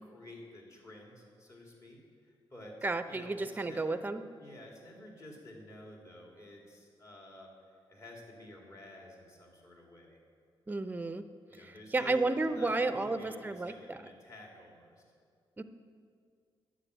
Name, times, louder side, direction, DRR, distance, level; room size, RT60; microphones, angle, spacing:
voice 1, 0.0-2.7 3.1-4.0 4.4-10.2 11.5-15.0, left 1 dB, 35° left, 0 dB, 2.6 m, -51 dB
voice 2, 2.8-4.2 10.7-11.2 11.6-14.0 15.6-15.7, right 3 dB, 20° right, 11 dB, 0.6 m, -32 dB
9.8 x 7.3 x 8.1 m, 2.1 s
cardioid pair, 95°, 9 cm